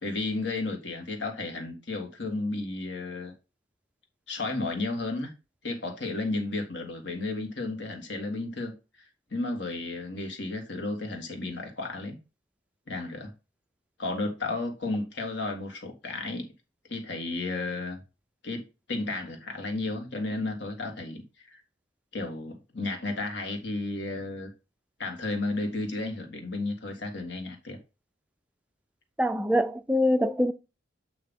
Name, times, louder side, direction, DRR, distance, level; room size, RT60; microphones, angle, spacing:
voice 1, 0.0-3.3 4.3-5.3 5.6-8.7 9.3-12.2 12.9-13.3 14.0-16.4 16.9-18.0 18.4-18.6 18.9-21.2 21.5-21.6 22.1-24.5 25.0-27.8, left 2 dB, 60° left, 1.8 m, -33 dB
voice 2, 29.2-30.5, equal, 5° right, 0.3 m, -24 dB
8.6 x 2.9 x 5.4 m
head